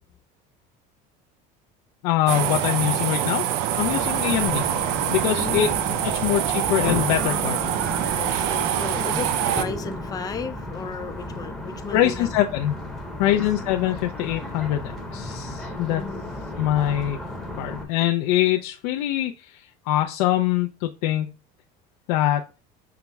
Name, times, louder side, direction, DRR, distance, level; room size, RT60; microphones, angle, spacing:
voice 1, 2.0-3.4 3.8-4.6 5.1-5.7 6.0-7.6 11.9-12.8 13.2-16.0 16.6-17.2 17.6-21.3 22.1-22.4, left 13 dB, 85° left, 0.4 m, -23 dB
sound 1, 2.3-9.6, right 11 dB, 80° right, 0.5 m, -25 dB
sound 2, 3.7-17.8, left 1 dB, ahead, 0.8 m, -34 dB
voice 2, 5.3-5.7 8.1-12.4 13.2-13.4 15.7-16.3, left 5 dB, 20° left, 0.4 m, -35 dB
5.7 x 2.0 x 3.4 m
cardioid pair, 145°, 20 cm